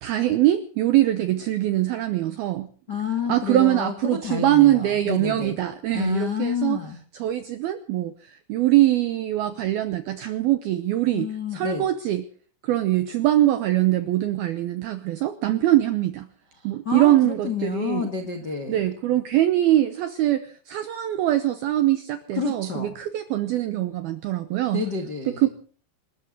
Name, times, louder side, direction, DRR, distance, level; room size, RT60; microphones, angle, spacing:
voice 1, 0.0-2.7 3.3-6.8 7.2-12.2 12.6-16.3 16.6-18.1 18.7-24.8 25.4-25.5, right 14 dB, 75° right, 10 dB, 2.3 m, -22 dB
voice 2, 2.9-5.6 5.9-7.0 11.1-11.9 16.6-18.9 22.3-22.9 24.7-25.5, left 6 dB, 70° left, 5 dB, 0.9 m, -29 dB
27.5 x 13.5 x 3.9 m, 0.43 s
omnidirectional pair, 5.5 m